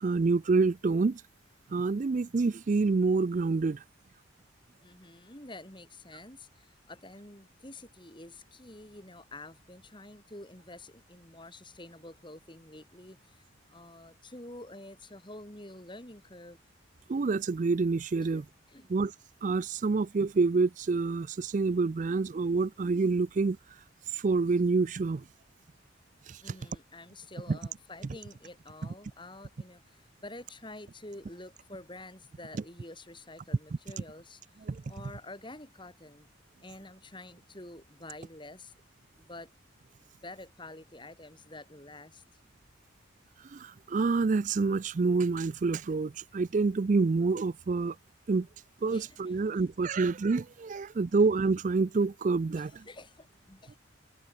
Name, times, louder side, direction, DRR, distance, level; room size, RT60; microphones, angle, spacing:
voice 1, 0.0-1.2 1.7-3.8 17.1-18.4 18.9-19.1 19.4-23.6 24.1-25.2 26.3-26.5 34.7-34.8 43.4-48.0 48.3-48.5 48.8-52.8, right 4 dB, 40° right, 0.4 m, -27 dB
voice 2, 4.8-16.6 18.2-18.4 18.7-18.9 26.4-36.3 36.6-38.7 39.2-39.5 40.0-42.2 48.9-49.4 52.5-53.8, left 2 dB, 25° left, 5.4 m, -48 dB
head